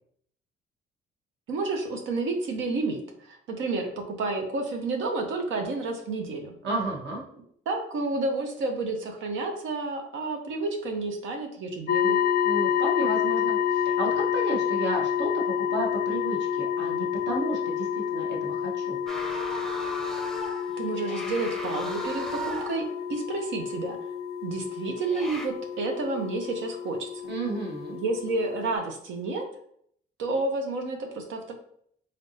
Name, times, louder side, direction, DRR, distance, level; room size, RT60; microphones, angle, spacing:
voice 1, 1.5-3.9 4.2-6.6 7.7-12.2 20.8-24.0 24.4-27.1 27.9-29.4 30.2-31.5, right 3 dB, 80° right, 3 dB, 0.7 m, -30 dB
voice 2, 6.6-7.2 12.4-15.3 15.6-19.0 27.3-28.0, right 2 dB, 60° right, -1 dB, 1.3 m, -32 dB
sound 1, 11.9-28.8, left 9 dB, 55° left, 0.4 m, -29 dB
sound 2, 19.1-22.9 25.0-25.5, equal, ahead, 0.6 m, -36 dB
3.9 x 3.4 x 2.7 m, 0.67 s
cardioid pair, 90°, 20 cm